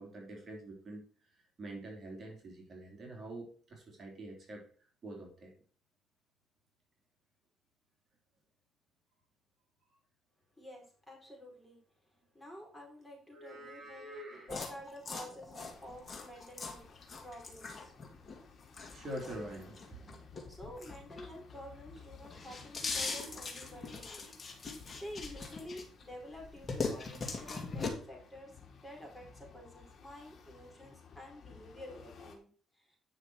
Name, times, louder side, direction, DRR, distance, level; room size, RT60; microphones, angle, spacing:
voice 1, 0.0-4.7 5.0-5.5 13.3-14.6 18.8-20.3, right 1 dB, 40° right, 0 dB, 3.4 m, -46 dB
voice 2, 10.6-11.8 12.3-14.1 14.4-16.8 17.2-17.9 20.5-24.3 24.9-28.5 28.8-32.5 32.8-33.0, equal, 10° left, -1 dB, 4.7 m, -50 dB
sound 1, 14.5-21.6 22.0-26.0 26.4-27.9, left 4 dB, 30° left, 2.5 m, -41 dB
sound 2, 15.6-32.4, left 6 dB, 50° left, 2.8 m, -57 dB
9.8 x 6.3 x 4.6 m, 0.43 s
cardioid pair, 100°, 0 cm